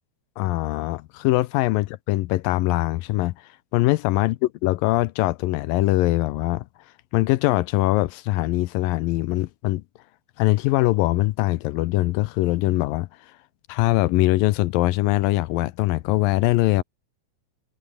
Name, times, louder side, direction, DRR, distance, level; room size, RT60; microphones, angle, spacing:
voice 1, 0.4-6.7 7.1-9.8 10.4-13.3 13.7-16.8, left 18 dB, 80° left, 2.2 m, -22 dB
omnidirectional pair, 4.5 m